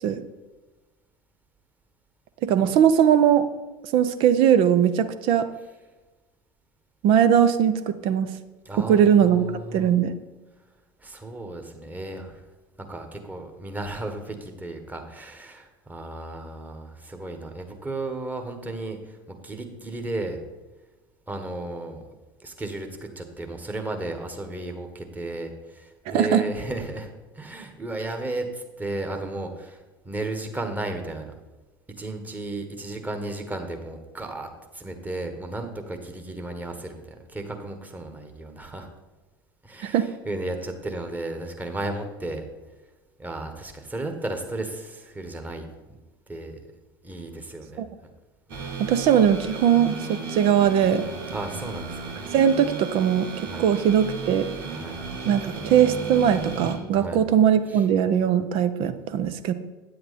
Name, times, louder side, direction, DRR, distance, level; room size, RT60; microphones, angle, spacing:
voice 1, 2.4-3.5 3.9-5.5 7.0-8.3 8.8-9.4 9.7-10.1 26.1-26.4 39.8-40.0 47.8-47.9 48.8-51.1 52.3-54.5 55.3-59.5, right 9 dB, 50° right, 11 dB, 0.7 m, -20 dB
voice 2, 8.6-9.9 11.0-12.4 12.9-20.4 21.3-22.0 22.4-29.8 30.0-31.3 32.0-38.9 39.6-42.4 43.2-45.9 46.3-46.6 47.0-47.8 48.5-48.8 51.3-52.1 53.5-53.7 54.7-55.0 56.9-57.2 57.7-57.8, right 2 dB, 15° right, 5 dB, 1.5 m, -34 dB
sound 1, 48.5-56.7, right 4 dB, 70° right, 2.1 m, -34 dB
9.0 x 7.7 x 4.2 m, 1.2 s
figure-of-eight pair, 75°, 12 cm